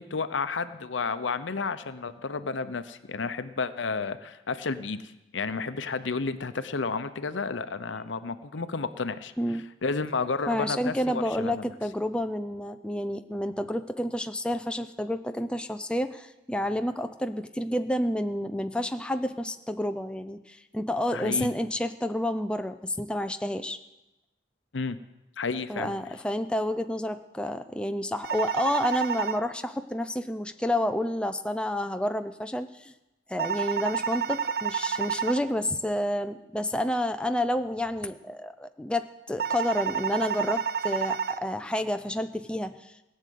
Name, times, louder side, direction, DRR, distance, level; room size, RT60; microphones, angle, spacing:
voice 1, 0.0-9.3 9.8-11.6 21.1-21.5 24.7-25.0 25.4-25.9, left 4 dB, 90° left, 12 dB, 0.8 m, -31 dB
voice 2, 10.5-23.8 25.7-32.9 33.3-42.9, left 1 dB, 5° left, 8 dB, 0.5 m, -29 dB
sound 1, 28.2-29.4 33.4-35.4 39.4-41.4, right 7 dB, 55° right, 0.6 m, -29 dB
17.0 x 6.6 x 9.3 m, 0.98 s
head